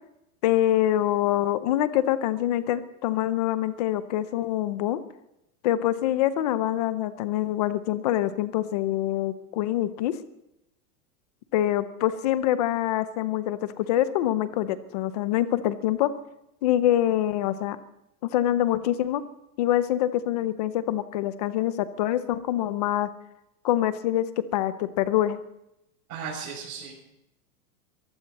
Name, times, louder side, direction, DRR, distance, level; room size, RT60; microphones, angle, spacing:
voice 1, 0.4-5.0 5.6-10.1 11.5-16.1 16.6-17.8 18.2-19.2 19.6-23.1 23.6-25.4, left 12 dB, 30° left, 14 dB, 0.6 m, -25 dB
voice 2, 26.1-27.0, right 6 dB, 65° right, -6 dB, 6.9 m, -36 dB
22.0 x 15.5 x 4.1 m, 0.86 s
supercardioid pair, 180°, 44 cm